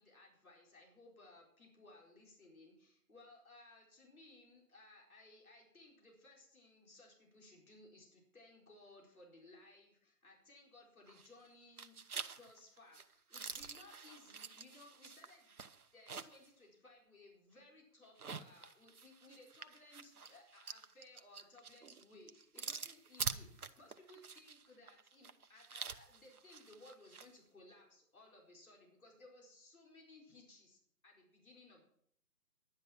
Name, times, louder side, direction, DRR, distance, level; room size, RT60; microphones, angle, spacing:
voice 1, 0.0-12.0 12.4-15.6 15.9-31.8, left 2 dB, 60° left, -1 dB, 4.4 m, -61 dB
sound 1, 11.1-11.5 11.8-16.5 16.9-17.0 18.0-27.3, right 5 dB, 65° right, 0.9 m, -47 dB
11.0 x 9.5 x 5.9 m, 0.66 s
figure-of-eight pair, 145°, 47 cm